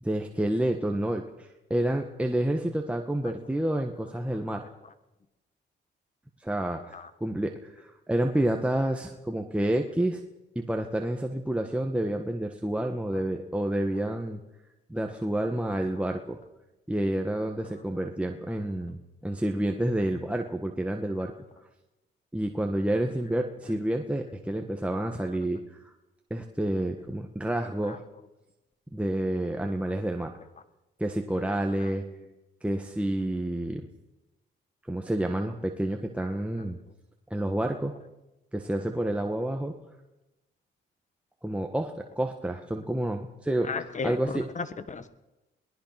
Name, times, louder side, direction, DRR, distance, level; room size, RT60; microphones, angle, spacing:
voice 1, 0.0-4.7 6.4-10.2 10.5-14.4 14.9-16.4 16.9-21.3 22.3-25.9 26.3-28.0 28.9-30.3 31.0-32.0 32.6-33.9 34.9-36.8 37.3-37.9 38.5-39.7 41.4-43.7 44.0-44.4, right 1 dB, 5° right, 3 dB, 1.6 m, -29 dB
voice 2, 31.8-32.2 43.6-45.1, left 4 dB, 35° left, 12 dB, 1.7 m, -36 dB
22.5 x 19.0 x 6.0 m, 0.99 s
cardioid pair, 90°, 20 cm